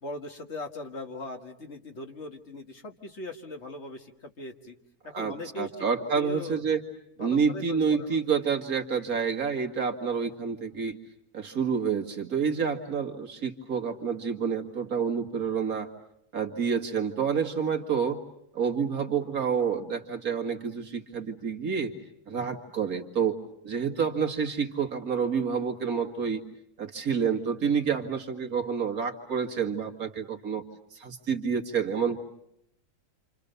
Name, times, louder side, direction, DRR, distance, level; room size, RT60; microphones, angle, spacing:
voice 1, 0.0-4.8 5.0-5.8 6.2-6.6 7.2-8.2, left 2 dB, 45° left, 5 dB, 2.0 m, -40 dB
voice 2, 5.1-6.8 7.2-11.0 11.3-15.9 16.3-18.2 18.5-21.9 22.3-23.4 23.6-26.4 26.8-30.6 30.9-32.2, right 6 dB, 70° right, 4 dB, 2.4 m, -28 dB
28.0 x 28.0 x 6.8 m, 0.76 s
omnidirectional pair, 1.6 m